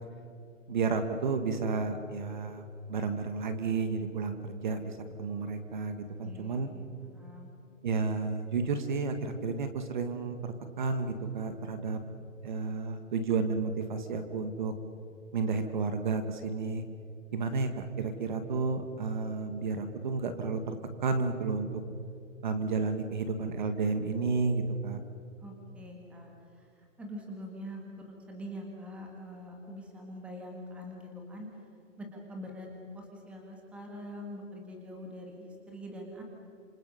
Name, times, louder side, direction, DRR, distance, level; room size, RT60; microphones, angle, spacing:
voice 1, 0.7-2.6 2.9-6.7 7.8-12.0 12.4-14.7 15.3-16.8 17.3-20.8 21.0-21.8 22.4-25.0, right 4 dB, 35° right, 8 dB, 1.6 m, -31 dB
voice 2, 6.2-7.5 25.4-26.3 27.0-31.5 32.0-32.7 32.9-36.2, equal, 5° right, 0 dB, 1.7 m, -44 dB
27.5 x 26.0 x 5.6 m, 2.7 s
hypercardioid pair, 175°, 39 cm